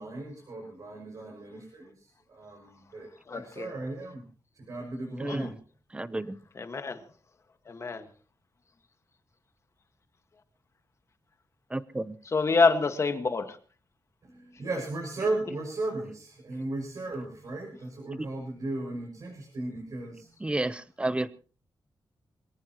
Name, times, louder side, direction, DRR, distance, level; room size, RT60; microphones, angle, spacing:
voice 1, 0.0-4.2 4.5-5.5 14.2-20.3, right 2 dB, 55° right, 6.3 m, -36 dB
voice 2, 3.3-3.7 5.2-5.5 6.5-7.0 7.7-8.1 12.2-13.6, left 4 dB, 40° left, 1.6 m, -27 dB
voice 3, 5.2-5.5 5.9-6.3 11.7-12.2 20.4-21.3, right 2 dB, 15° right, 0.8 m, -31 dB
23.5 x 17.5 x 3.0 m
wide cardioid pair, 140°, 8 cm